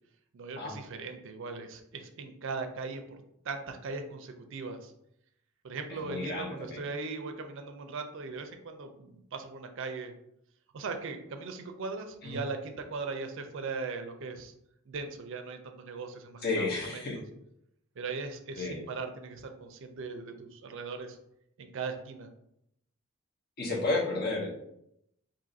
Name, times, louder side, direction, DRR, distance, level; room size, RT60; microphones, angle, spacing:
voice 1, 0.3-4.9 5.6-10.1 10.7-14.5 14.9-17.1 18.0-21.2 21.6-22.3, right 4 dB, 60° right, 6 dB, 0.4 m, -39 dB
voice 2, 6.0-6.8 12.2-12.4 16.4-17.2 18.6-18.8 23.6-24.5, left 3 dB, 50° left, -2 dB, 0.9 m, -32 dB
2.7 x 2.5 x 3.9 m, 0.77 s
head